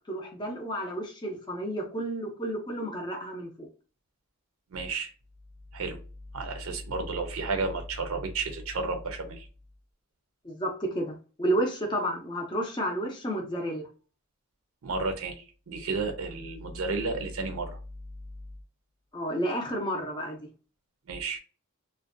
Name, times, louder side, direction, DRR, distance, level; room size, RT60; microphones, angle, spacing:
voice 1, 0.1-3.7 10.4-13.9 19.1-20.5, right 1 dB, 20° left, 0.5 m, -31 dB
voice 2, 4.7-5.1 5.7-6.0 6.3-9.5 14.8-17.8 21.1-21.4, right 3 dB, 75° right, 0.5 m, -32 dB
2.5 x 2.1 x 2.5 m
head